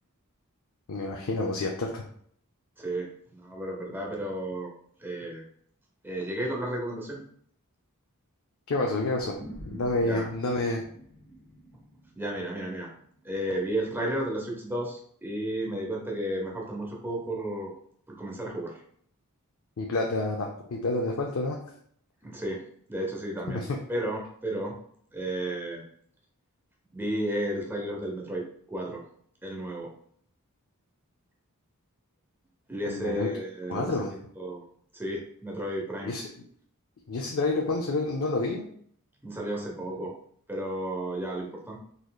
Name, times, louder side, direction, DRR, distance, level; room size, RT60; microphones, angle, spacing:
voice 1, 0.9-2.0 8.7-9.4 9.7-10.8 19.8-21.6 23.5-23.7 32.9-33.3 33.7-34.1 36.0-36.2 37.1-38.6, left 2 dB, 65° left, 0 dB, 0.5 m, -29 dB
voice 2, 2.8-4.7 5.0-5.4 6.0-7.2 10.0-10.2 12.2-12.9 13.2-17.7 18.1-18.8 22.2-23.6 23.9-24.7 25.1-25.8 26.9-28.4 28.7-29.0 29.4-29.9 32.7-33.9 34.4-34.6 34.9-36.1 39.2-40.1 40.5-41.8, right 1 dB, 10° right, -1 dB, 0.8 m, -33 dB
sound 1, 9.2-13.9, right 1 dB, 30° left, 1.1 m, -47 dB
4.0 x 3.1 x 2.3 m, 0.62 s
head